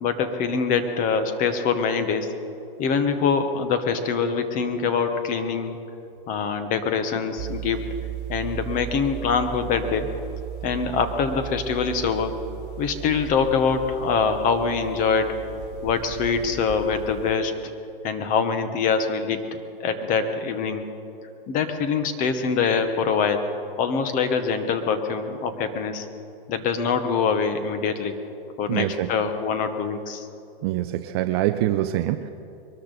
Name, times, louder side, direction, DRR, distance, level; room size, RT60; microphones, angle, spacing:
voice 1, 0.0-2.3 2.8-5.8 6.3-7.8 8.3-10.1 10.6-12.3 12.8-15.4 15.8-17.6 18.0-19.4 19.8-20.8 21.5-23.4 23.8-26.1 26.5-28.2 28.6-30.3, left 5 dB, 30° left, 8 dB, 1.2 m, -24 dB
sound 1, 7.4-17.3, right 10 dB, 45° right, 4.1 m, -36 dB
voice 2, 28.7-29.1 30.6-32.3, right 14 dB, 30° right, 9 dB, 0.4 m, -24 dB
22.5 x 13.0 x 4.1 m, 2.8 s
hypercardioid pair, 140°, 29 cm